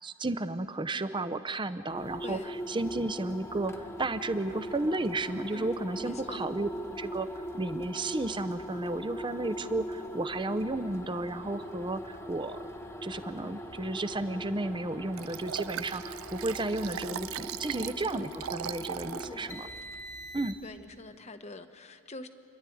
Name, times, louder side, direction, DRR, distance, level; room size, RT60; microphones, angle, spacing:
voice 1, 0.0-6.7 7.0-7.3 7.5-12.6 13.0-19.7 20.3-20.6, right 2 dB, 20° right, 12 dB, 0.6 m, -33 dB
sound 1, 1.9-20.9, equal, 15° left, 1.3 m, -41 dB
voice 2, 2.2-2.5 5.5-6.4 17.8-18.2 19.1-19.5 20.6-22.3, left 2 dB, 30° left, 9 dB, 1.0 m, -46 dB
Liquid, 15.2-19.3 19.8-19.9, right 10 dB, 70° right, 0.4 m, -39 dB
29.0 x 12.0 x 9.2 m, 2.5 s
head